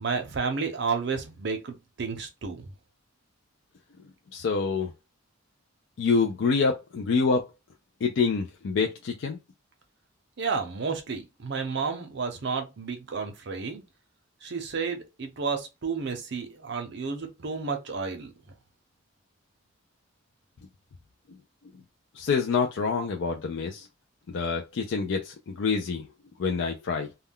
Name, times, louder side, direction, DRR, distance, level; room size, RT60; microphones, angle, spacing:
voice 1, 0.0-2.6 10.4-13.8 14.4-18.3, right 5 dB, 55° right, 0.6 m, -31 dB
voice 2, 4.3-4.9 6.0-7.4 8.0-9.4 22.2-23.9 24.3-26.0 26.4-27.1, left 5 dB, 60° left, 0.3 m, -26 dB
2.2 x 2.2 x 3.5 m
head